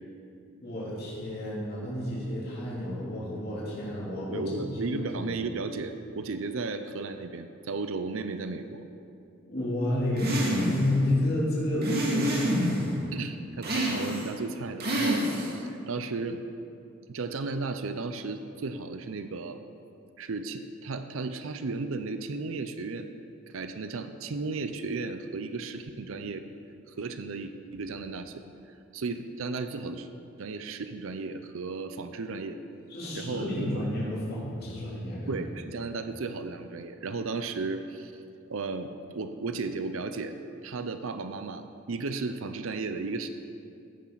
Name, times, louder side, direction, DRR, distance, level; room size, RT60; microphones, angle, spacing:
voice 1, 0.6-4.4 4.9-5.3 9.5-13.0 32.9-35.3, left 1 dB, 50° left, -7 dB, 3.3 m, -30 dB
voice 2, 4.3-8.8 13.1-16.4 17.1-19.6 20.2-23.1 23.5-26.4 26.9-28.4 28.9-30.1 30.4-32.6 33.1-33.9 35.3-38.1 38.5-40.4 40.6-43.3, right 3 dB, 75° right, 9 dB, 0.6 m, -34 dB
sound 1, 10.2-10.9 11.8-12.9 13.6-14.3 14.8-15.6, right 1 dB, 50° right, 2.1 m, -28 dB
14.5 x 10.0 x 4.0 m, 2.6 s
head